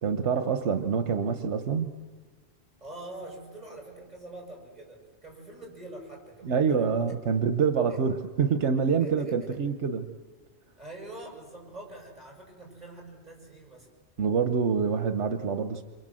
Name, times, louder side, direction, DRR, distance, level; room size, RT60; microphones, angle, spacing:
voice 1, 0.0-1.9 6.4-10.1 14.2-15.8, right 6 dB, 85° right, 7 dB, 1.3 m, -26 dB
voice 2, 2.8-6.9 7.9-8.1 8.9-9.6 10.8-13.9, right 2 dB, 35° right, -1 dB, 7.6 m, -45 dB
29.0 x 27.0 x 7.7 m, 1.4 s
omnidirectional pair, 1.2 m